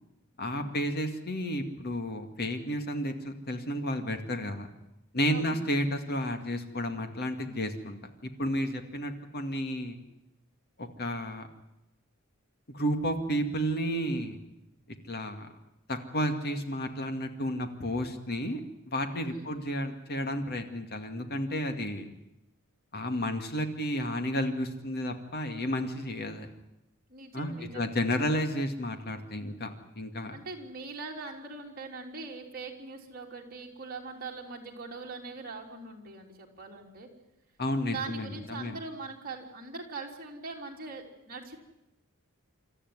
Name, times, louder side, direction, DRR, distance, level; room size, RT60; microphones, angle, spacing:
voice 1, 0.4-4.7 5.1-10.0 10.8-11.5 12.7-14.4 15.1-15.5 15.9-18.6 18.9-22.0 22.9-26.5 27.3-29.7 30.0-30.4 37.6-38.8, equal, 50° left, 7 dB, 2.2 m, -32 dB
voice 2, 5.3-5.6 19.3-19.5 27.1-27.9 30.3-37.1 37.8-41.6, right 3 dB, 45° right, 0 dB, 3.4 m, -42 dB
27.0 x 13.5 x 9.6 m, 0.89 s
head